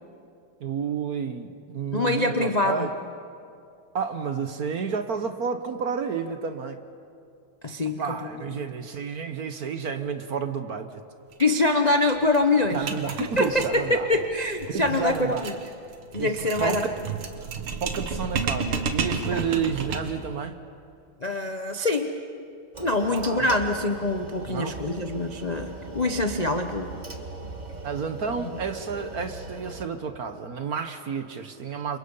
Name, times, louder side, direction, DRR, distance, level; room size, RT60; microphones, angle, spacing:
voice 1, 0.6-2.9 3.9-6.8 8.0-10.9 12.7-14.1 14.7-15.5 16.1-16.3 16.6-16.9 17.8-20.6 23.1-23.5 24.5-24.8 27.8-32.0, right 6 dB, 50° right, 8 dB, 1.3 m, -30 dB
voice 2, 1.9-2.9 7.6-8.0 11.4-12.9 13.2-15.5 16.1-16.8 19.3-19.4 21.2-22.1 22.8-27.0 28.4-28.5, left 2 dB, 45° left, 5 dB, 0.5 m, -24 dB
sound 1, 11.3-11.4 11.7-11.8 12.1-20.3, right 5 dB, 70° right, 2.3 m, -32 dB
sound 2, 22.7-29.8, right 3 dB, 25° right, 1.2 m, -39 dB
29.5 x 27.0 x 5.6 m, 2.5 s
omnidirectional pair, 2.4 m